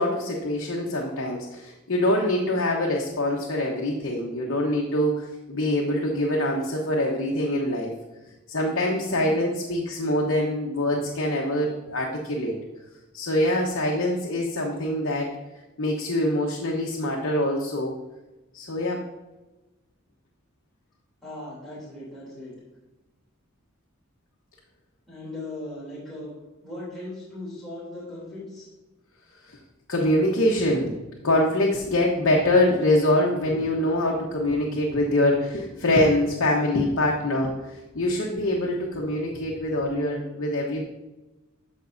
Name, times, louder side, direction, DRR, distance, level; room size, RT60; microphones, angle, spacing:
voice 1, 0.0-7.9 8.5-12.6 13.1-15.4 15.8-18.0 18.5-19.0 29.5-29.6 29.9-30.9 31.2-40.8, left 1 dB, 65° left, -2 dB, 1.1 m, -24 dB
voice 2, 9.1-9.4 21.2-22.5 25.1-26.3 26.6-28.7, left 1 dB, ahead, -10 dB, 3.0 m, -38 dB
14.0 x 5.3 x 2.6 m, 1.1 s
head